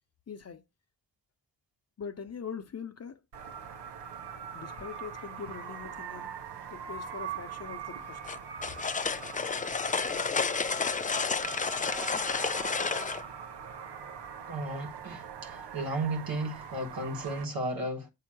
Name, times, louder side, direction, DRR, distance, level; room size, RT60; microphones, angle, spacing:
voice 1, 0.3-0.6 2.0-3.2 4.5-6.4 6.7-8.2, left 6 dB, 40° left, 0.9 m, -42 dB
sound 1, 3.3-17.4, right 7 dB, 80° right, 1.0 m, -42 dB
sound 2, 8.3-13.2, left 5 dB, 20° left, 0.4 m, -31 dB
voice 2, 14.5-18.1, right 2 dB, 60° right, 1.3 m, -34 dB
7.5 x 2.9 x 6.1 m
cardioid pair, 75°, 40 cm